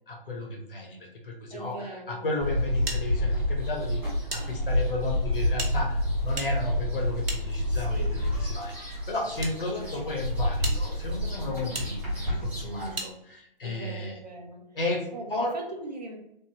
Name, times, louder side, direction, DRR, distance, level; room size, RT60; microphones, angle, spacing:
voice 1, 0.1-12.1 12.4-14.1 14.7-15.6, left 2 dB, 65° left, -1 dB, 1.2 m, -33 dB
voice 2, 1.5-2.3 7.7-8.2 9.7-9.9 11.3-11.7 12.6-13.1 13.6-14.8 15.1-16.2, right 2 dB, 45° right, 1 dB, 0.7 m, -40 dB
sound 1, 2.4-13.0, left 1 dB, 5° right, 0.6 m, -29 dB
sound 2, 2.9-4.4 4.7-4.8 5.5-8.0 8.8-9.5 10.1-10.2 10.6-10.8 11.7-11.9 12.9-13.1, right 2 dB, 85° right, 0.9 m, -37 dB
3.4 x 2.4 x 3.0 m, 0.80 s
figure-of-eight pair, 140°, 29 cm